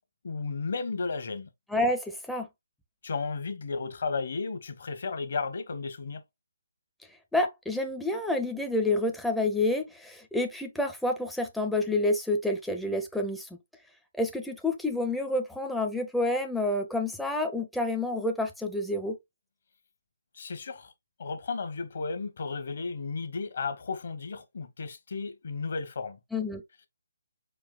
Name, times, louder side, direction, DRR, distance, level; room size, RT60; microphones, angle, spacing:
voice 1, 0.2-1.5 3.0-6.2 20.3-20.9 21.2-26.2, left 4 dB, 55° left, 1.0 m, -34 dB
voice 2, 1.7-2.5 7.3-13.5 14.1-19.2 26.3-26.6, left 2 dB, ahead, 0.5 m, -28 dB
4.7 x 4.6 x 2.2 m
figure-of-eight pair, 145°, 0 cm